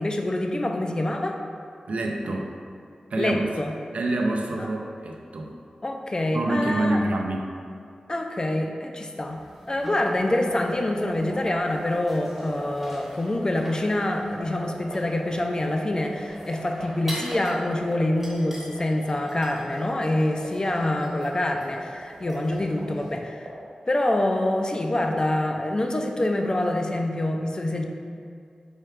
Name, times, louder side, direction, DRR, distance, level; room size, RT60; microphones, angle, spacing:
voice 1, 0.0-1.4 3.2-3.8 4.6-4.7 5.8-7.0 8.1-23.5 23.9-27.8, left 1 dB, 35° left, 3 dB, 0.3 m, -26 dB
voice 2, 1.9-2.5 3.1-3.5 3.9-5.5 6.3-7.5, right 2 dB, 75° right, 1 dB, 0.4 m, -26 dB
sound 1, 9.2-23.2, equal, 10° right, 0.7 m, -44 dB
sound 2, 10.5-23.5, right 2 dB, 55° right, 1.2 m, -37 dB
4.3 x 2.3 x 3.4 m, 2.3 s
cardioid pair, 55°, 2 cm